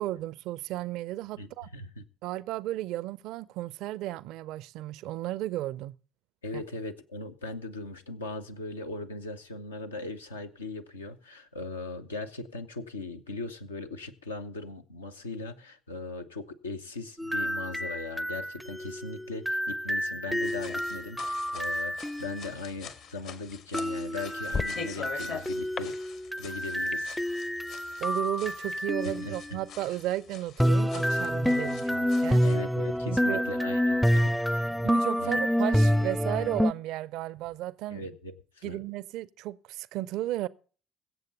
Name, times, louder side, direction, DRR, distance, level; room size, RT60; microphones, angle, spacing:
voice 1, 0.0-1.7 2.2-5.9 6.5-6.6 28.0-31.9 32.2-32.4 33.1-33.4 34.8-38.1 38.6-40.5, right 15 dB, 60° right, 0.5 m, -34 dB
voice 2, 1.4-2.0 6.4-26.0 26.4-27.2 29.2-29.6 31.6-32.1 32.4-34.7 35.2-35.4 37.9-38.8, left 3 dB, 80° left, 0.9 m, -39 dB
sound 1, 17.2-22.5 23.7-29.5 30.6-36.7, equal, ahead, 0.5 m, -28 dB
sound 2, 20.3-32.6, left 6 dB, 55° left, 1.5 m, -45 dB
sound 3, 23.4-28.8, left 4 dB, 35° left, 0.8 m, -42 dB
22.5 x 8.0 x 3.8 m
figure-of-eight pair, 50°, 0 cm